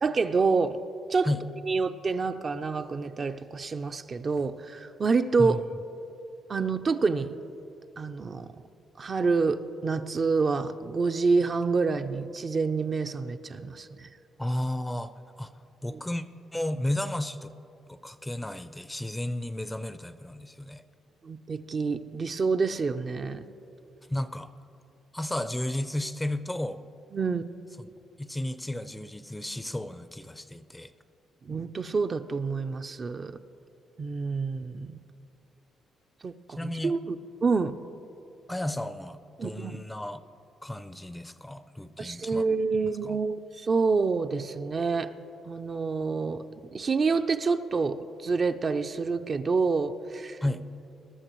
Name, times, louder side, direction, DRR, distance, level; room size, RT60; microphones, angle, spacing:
voice 1, 0.0-0.8 1.1-1.3 1.6-5.6 6.5-7.3 8.0-8.5 9.0-14.1 15.9-16.0 21.2-23.4 27.1-27.4 31.4-33.3 34.0-35.0 36.2-37.2 37.4-37.7 39.4-39.8 42.0-45.1 45.4-46.4 46.7-50.4, right 4 dB, 40° right, 8 dB, 0.5 m, -27 dB
voice 2, 14.4-15.1 15.4-15.5 15.8-16.3 16.5-17.5 17.9-20.8 24.1-24.5 25.1-26.8 27.8-27.9 28.2-30.9 36.5-36.9 38.5-40.2 40.6-42.4 42.8-43.2 50.4-50.6, left 1 dB, 10° left, 12 dB, 0.5 m, -33 dB
21.0 x 13.0 x 3.1 m, 2.7 s
cardioid pair, 90°, 0 cm